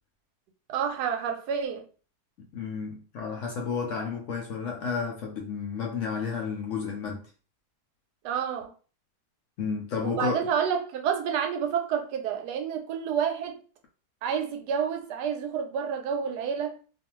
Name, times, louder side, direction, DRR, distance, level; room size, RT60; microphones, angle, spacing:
voice 1, 0.7-1.8 8.2-8.7 10.0-13.6 14.2-16.8, right 7 dB, 90° right, 1.2 m, -29 dB
voice 2, 2.4-7.3 9.6-10.3, left 5 dB, 70° left, 0.8 m, -32 dB
2.5 x 2.4 x 2.9 m
omnidirectional pair, 1.7 m